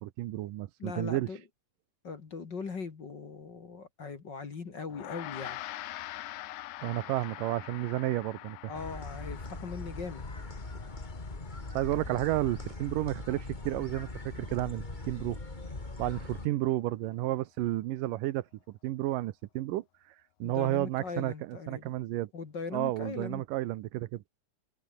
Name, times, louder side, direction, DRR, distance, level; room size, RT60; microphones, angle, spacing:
voice 1, 0.0-1.3 6.8-8.7 11.7-15.4 16.0-19.8 20.4-22.3 22.7-24.2, right 16 dB, 90° right, 2.6 m, -32 dB
voice 2, 0.8-1.4 2.0-5.6 8.7-10.3 20.4-21.9 22.3-23.4, left 4 dB, 35° left, 2.4 m, -40 dB
Gong, 4.9-14.5, left 15 dB, 75° left, 2.2 m, -45 dB
sound 1, 8.7-16.5, left 2 dB, 15° left, 2.1 m, -41 dB
omnidirectional pair, 3.7 m